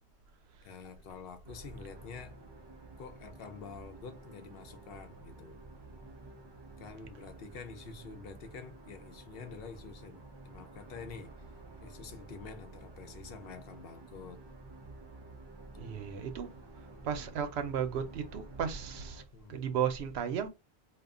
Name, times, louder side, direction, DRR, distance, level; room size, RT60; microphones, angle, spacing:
voice 1, 0.6-2.4 3.0-5.5 6.8-11.3 11.8-14.4 15.7-16.1 19.3-19.5, left 5 dB, 70° left, 0.8 m, -48 dB
sound 1, 1.4-19.2, right 2 dB, 45° right, 0.3 m, -51 dB
voice 2, 15.8-16.5 17.0-19.2 19.5-20.5, right 8 dB, 85° right, 0.9 m, -34 dB
2.3 x 2.1 x 3.6 m
omnidirectional pair, 1.1 m